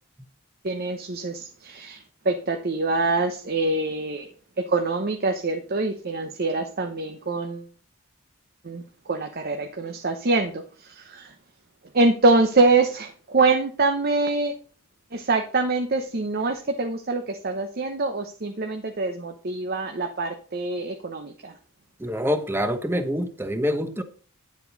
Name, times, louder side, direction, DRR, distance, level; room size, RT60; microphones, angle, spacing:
voice 1, 0.6-4.3 4.6-7.7 8.6-11.3 11.9-14.5 15.1-21.5, right 3 dB, 45° right, 5 dB, 0.9 m, -25 dB
voice 2, 22.0-24.0, equal, 10° right, 9 dB, 1.0 m, -26 dB
10.0 x 7.5 x 4.0 m, 0.41 s
head